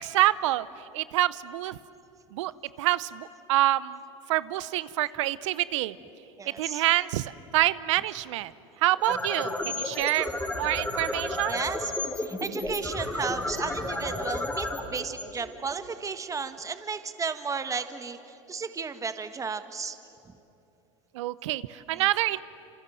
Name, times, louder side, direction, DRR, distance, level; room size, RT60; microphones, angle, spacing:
voice 1, 0.0-1.8 2.3-2.5 2.8-4.0 4.3-6.0 6.4-8.5 8.8-10.3 10.5-11.6 21.1-22.4, right 16 dB, 70° right, 18 dB, 0.8 m, -27 dB
voice 2, 6.4-6.8 11.5-11.9 12.2-20.0, right 5 dB, 20° right, 10 dB, 1.5 m, -34 dB
sound 1, 8.9-16.0, left 2 dB, 10° left, 4.0 m, -32 dB
27.0 x 27.0 x 7.7 m, 2.9 s
hypercardioid pair, 90°, 16 cm